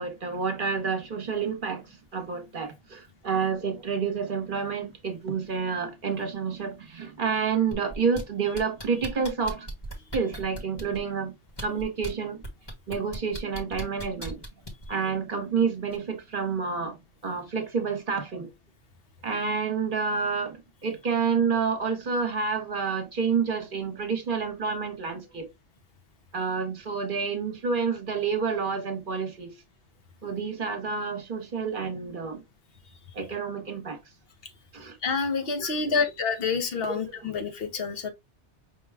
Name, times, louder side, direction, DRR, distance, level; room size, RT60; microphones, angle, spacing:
voice 1, 0.0-9.7 10.1-11.3 11.6-12.4 12.9-14.4 14.9-17.0 17.2-18.5 19.2-25.5 26.3-29.6 30.2-32.4 33.1-34.0 34.7-35.0 35.6-36.0 36.9-37.3, right 5 dB, 50° right, 1.1 m, -29 dB
sound 1, 7.7-8.2 8.5-11.0 11.5-12.1 12.4-14.9 15.9-16.0, right 1 dB, 25° left, 1.1 m, -37 dB
voice 2, 35.0-38.1, left 5 dB, 60° left, 1.0 m, -28 dB
5.2 x 2.2 x 3.4 m
omnidirectional pair, 1.2 m